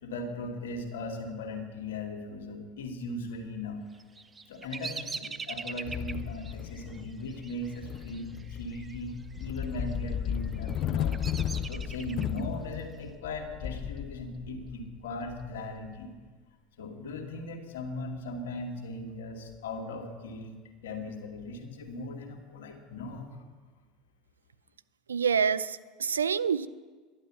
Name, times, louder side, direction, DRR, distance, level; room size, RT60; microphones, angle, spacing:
voice 1, 0.0-3.8 4.5-11.2 11.7-16.1 16.8-23.4, left 2 dB, 75° left, 2 dB, 2.2 m, -38 dB
Bird vocalization bird call bird song, 3.9-9.0 9.2-9.8 10.4-12.4, right 4 dB, 20° right, 0.8 m, -42 dB
sound 1, 5.9-16.1, left 9 dB, 50° left, 0.7 m, -35 dB
voice 2, 25.1-26.7, right 6 dB, 85° right, 15 dB, 0.5 m, -27 dB
11.5 x 11.0 x 8.3 m, 1.4 s
hypercardioid pair, 80°, 0 cm